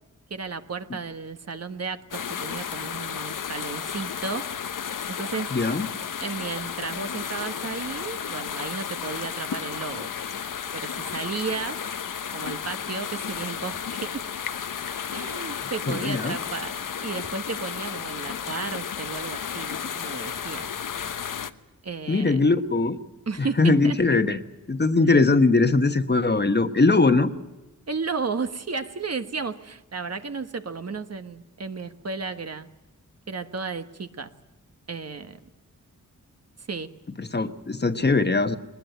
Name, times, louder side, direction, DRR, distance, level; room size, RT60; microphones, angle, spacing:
voice 1, 0.3-4.5 5.2-5.5 6.2-10.1 10.7-11.9 12.3-14.2 15.1-16.7 17.0-20.7 21.8-22.4 23.3-24.0 27.9-32.7 33.3-34.3 34.9-35.4 36.7-36.9, right 4 dB, 50° right, 9 dB, 1.4 m, -33 dB
sound 1, 2.1-21.5, left 7 dB, 75° left, 1.1 m, -33 dB
voice 2, 5.5-5.9 15.9-16.4 22.1-23.0 23.6-24.4 24.7-27.3 37.2-38.6, left 3 dB, 30° left, 9 dB, 1.3 m, -21 dB
21.5 x 20.0 x 9.2 m, 1.0 s
wide cardioid pair, 80°, 32 cm